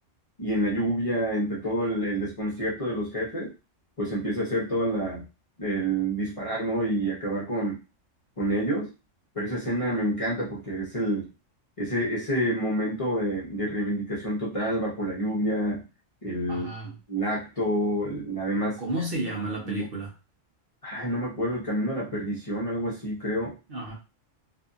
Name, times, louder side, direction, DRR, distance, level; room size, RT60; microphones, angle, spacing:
voice 1, 0.4-3.5 4.0-5.2 5.6-7.8 8.4-8.9 9.3-11.3 11.8-15.8 16.2-16.7 17.1-18.8 19.4-19.8 20.8-23.5, right 1 dB, 30° left, -6 dB, 0.8 m, -28 dB
voice 2, 16.5-16.9 18.8-20.1 23.7-23.9, right 2 dB, 50° right, -2 dB, 0.8 m, -32 dB
2.6 x 2.5 x 2.4 m, 0.29 s
omnidirectional pair, 1.3 m